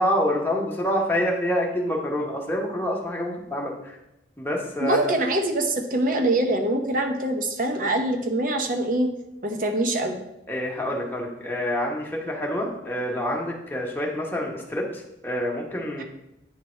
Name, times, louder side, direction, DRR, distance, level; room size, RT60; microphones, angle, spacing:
voice 1, 0.0-3.9 4.4-5.2 10.5-16.0, equal, 10° left, -1 dB, 1.0 m, -27 dB
voice 2, 4.8-9.1 9.4-10.2 16.0-16.1, right 1 dB, 45° right, 4 dB, 0.8 m, -24 dB
9.3 x 3.3 x 4.3 m, 0.89 s
head